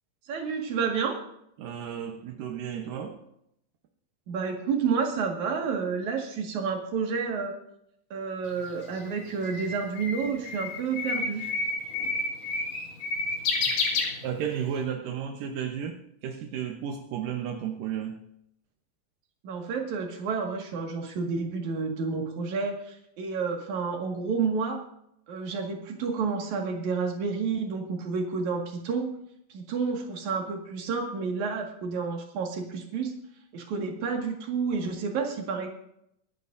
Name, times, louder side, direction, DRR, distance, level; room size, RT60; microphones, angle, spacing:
voice 1, 0.2-1.2 4.3-7.5 8.1-11.5 19.4-24.8 25.3-29.1 29.5-33.1 33.5-35.7, right 5 dB, 65° right, 2 dB, 3.2 m, -30 dB
voice 2, 1.6-3.2 14.2-18.2, right 8 dB, 85° right, 3 dB, 2.7 m, -33 dB
Bird, 8.5-14.7, left 3 dB, 55° left, 2.8 m, -30 dB
24.5 x 11.5 x 2.6 m, 0.76 s
omnidirectional pair, 3.8 m